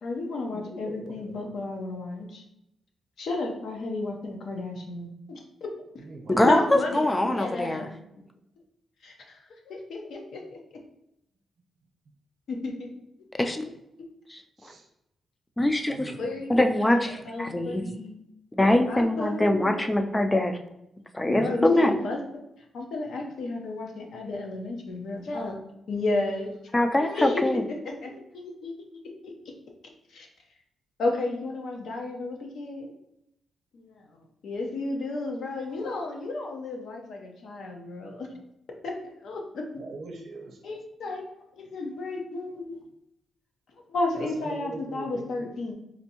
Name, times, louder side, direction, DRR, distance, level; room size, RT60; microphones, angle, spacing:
voice 1, 0.0-2.4 3.2-5.7 6.4-7.9 9.0-10.6 12.5-12.9 16.2-18.2 18.9-19.8 21.3-22.2 22.7-25.6 25.9-26.5 27.0-28.7 29.0-29.3 30.1-30.3 31.0-32.9 33.7-34.0 34.4-38.3 38.8-39.8 40.6-41.2 41.6-42.8 43.9-45.7, left 2 dB, 75° left, 1 dB, 0.7 m, -32 dB
voice 2, 0.5-1.5 6.0-6.4 14.6-14.9 15.9-16.7 17.1-18.0 21.3-21.6 37.6-37.7 38.0-38.4 39.8-40.6 44.2-45.4, right 2 dB, 65° right, 2 dB, 0.7 m, -42 dB
voice 3, 6.3-7.9 13.4-13.6 14.3-14.4 15.6-16.1 16.5-17.8 18.6-20.6 21.1-21.9 26.7-27.6, left 1 dB, 15° left, 6 dB, 0.3 m, -23 dB
4.3 x 2.6 x 2.8 m, 0.83 s
wide cardioid pair, 130°, 0 cm